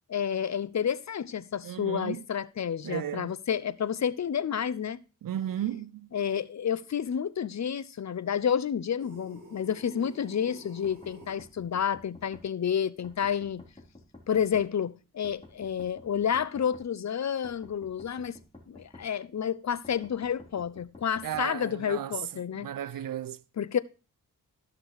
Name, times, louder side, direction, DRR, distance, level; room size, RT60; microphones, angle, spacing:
voice 1, 0.1-5.0 6.1-13.6 14.3-18.4 18.7-22.7 23.6-23.8, left 8 dB, 55° left, 0.7 m, -30 dB
voice 2, 1.6-2.2 2.8-3.3 5.2-6.1 21.2-22.2 22.5-23.4, right 11 dB, 75° right, 0.6 m, -34 dB
sound 1, 9.0-11.4, right 1 dB, 35° right, 7.5 m, -49 dB
sound 2, 10.8-12.5 13.0-14.7 15.2-16.9 17.4-19.1 19.8-21.5, left 2 dB, 15° left, 3.5 m, -50 dB
14.0 x 6.0 x 4.7 m
cardioid pair, 70°, 34 cm